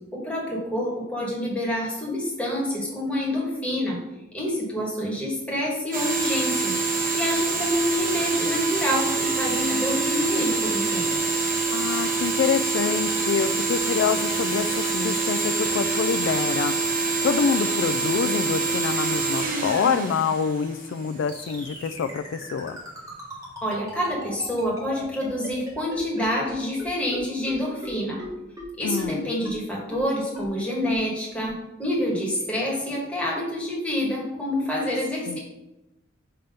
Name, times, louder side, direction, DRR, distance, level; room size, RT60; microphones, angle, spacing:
voice 1, 0.1-4.0 4.3-6.7 7.1-11.3 23.6-28.2 28.8-35.4, left 1 dB, 5° left, -5 dB, 1.7 m, -27 dB
sound 1, 5.9-21.1, right 3 dB, 45° right, 1.0 m, -25 dB
voice 2, 11.7-16.7 17.2-22.8 28.8-29.3 35.3-35.4, left 6 dB, 90° left, 11 dB, 0.3 m, -26 dB
sound 2, 21.3-26.5 26.8-26.9 27.1-27.2 27.5-27.6 27.8-27.9 28.2-28.3 28.6-28.7 29.0-29.1 29.4-29.5 29.9-30.0 30.4-30.5 30.9-31.0 31.4-31.5, left 1 dB, 20° right, 1.6 m, -37 dB
5.7 x 3.3 x 5.2 m, 0.97 s
head